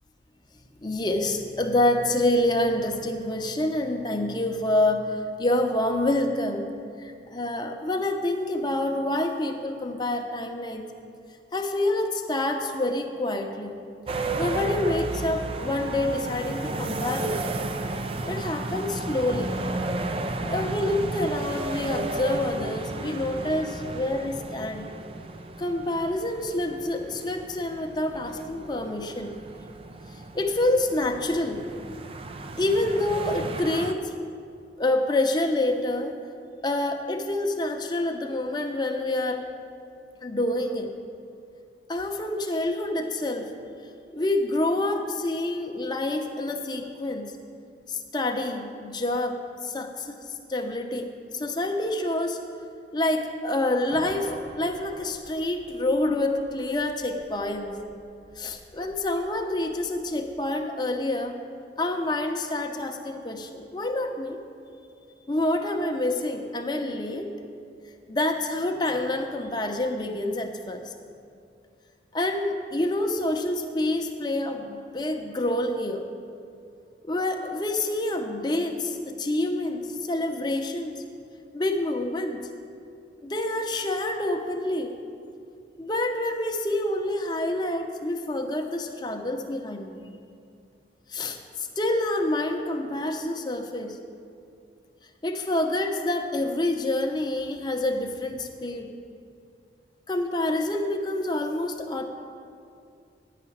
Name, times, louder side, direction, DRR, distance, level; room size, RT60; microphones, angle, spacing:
voice 1, 0.8-6.7 7.0-10.9 11.5-13.8 14.4-19.5 20.3-24.9 25.6-29.4 30.3-31.6 32.6-34.1 34.8-36.1 36.6-39.5 40.2-40.9 41.9-43.5 44.1-47.3 47.9-50.2 50.5-52.4 52.9-57.8 58.4-61.4 61.8-64.4 65.3-67.3 68.1-70.9 72.1-76.1 77.0-81.0 81.5-82.4 83.2-84.9 85.8-90.1 91.1-94.0 95.2-98.9 100.1-102.1, left 1 dB, 25° left, 4 dB, 0.7 m, -27 dB
sound 1, 14.1-33.9, right 2 dB, 30° right, 0.4 m, -33 dB
sound 2, 53.9-60.0, equal, 90° right, 2.4 m, -49 dB
9.9 x 5.8 x 8.6 m, 2.4 s
head